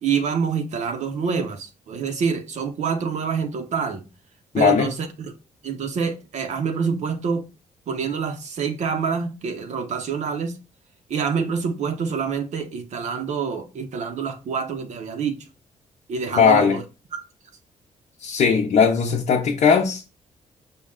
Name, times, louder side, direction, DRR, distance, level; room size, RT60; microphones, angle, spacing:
voice 1, 0.0-4.1 4.5-5.3 5.6-7.5 7.9-10.6 11.1-15.4 16.1-16.8 17.1-17.2, right 6 dB, 60° right, 0.6 m, -26 dB
voice 2, 4.5-4.9 16.4-16.8 18.2-20.0, left 6 dB, 60° left, 0.6 m, -18 dB
5.3 x 2.1 x 3.6 m
cardioid pair, 120°, 13 cm